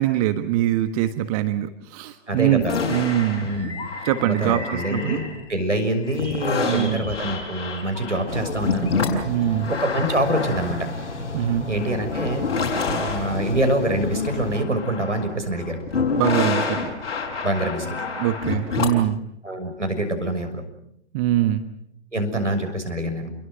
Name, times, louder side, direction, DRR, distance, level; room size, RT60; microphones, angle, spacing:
voice 1, 0.0-3.5 4.0-5.2 6.7-7.1 9.2-9.7 11.3-11.7 16.1-16.9 18.2-19.2 21.1-21.7, right 13 dB, 30° right, 9 dB, 1.4 m, -23 dB
voice 2, 2.3-2.8 3.4-3.7 4.2-8.9 9.7-10.9 11.7-12.4 12.9-15.8 17.4-18.0 19.4-20.6 22.1-23.3, right 1 dB, 85° right, 6 dB, 6.5 m, -25 dB
sound 1, 2.6-5.6 6.0-19.2, left 4 dB, 55° left, 6.6 m, -28 dB
sound 2, 8.3-14.6, left 3 dB, 75° left, 2.1 m, -33 dB
29.5 x 22.5 x 6.7 m, 0.74 s
figure-of-eight pair, 115°, 36 cm